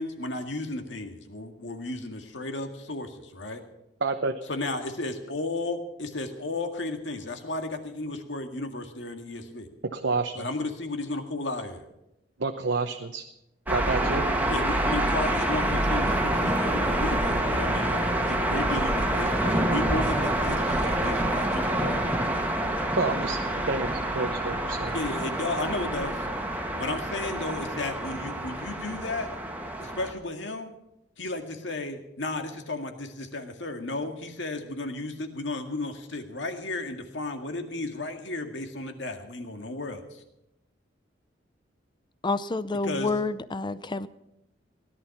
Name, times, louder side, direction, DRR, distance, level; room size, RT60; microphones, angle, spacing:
voice 1, 0.0-3.6 4.5-9.7 10.4-11.8 14.5-22.0 24.9-26.3 26.8-29.3 29.8-30.7 31.2-40.2 42.8-43.1, left 2 dB, 75° left, 5 dB, 2.0 m, -34 dB
voice 2, 4.0-4.3 9.8-10.5 12.4-13.2 13.7-14.2 23.0-23.4 23.7-24.9, right 3 dB, 70° right, 5 dB, 0.9 m, -29 dB
sound 1, 13.7-30.1, right 1 dB, 10° right, 1.6 m, -27 dB
voice 3, 42.2-44.1, left 3 dB, 25° left, 15 dB, 0.6 m, -28 dB
17.5 x 11.5 x 5.9 m, 0.85 s
head